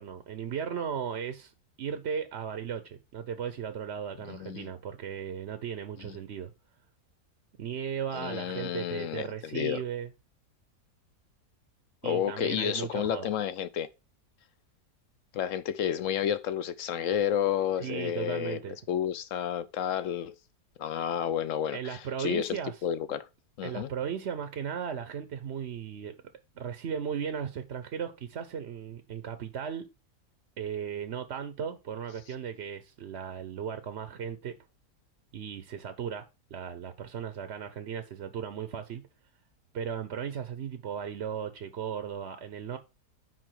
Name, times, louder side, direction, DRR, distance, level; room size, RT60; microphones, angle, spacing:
voice 1, 0.0-1.5 1.8-6.5 7.6-10.1 12.0-13.3 17.8-18.8 21.7-22.7 23.6-26.2 26.6-29.9 30.6-34.6 35.3-39.1 39.7-42.8, right 8 dB, 55° right, 0.8 m, -36 dB
voice 2, 4.3-4.7 6.0-6.2 8.1-9.8 12.0-13.9 15.3-20.3 20.8-23.3 23.6-23.9, left 9 dB, 65° left, 0.8 m, -31 dB
6.1 x 4.7 x 6.2 m
omnidirectional pair, 1.7 m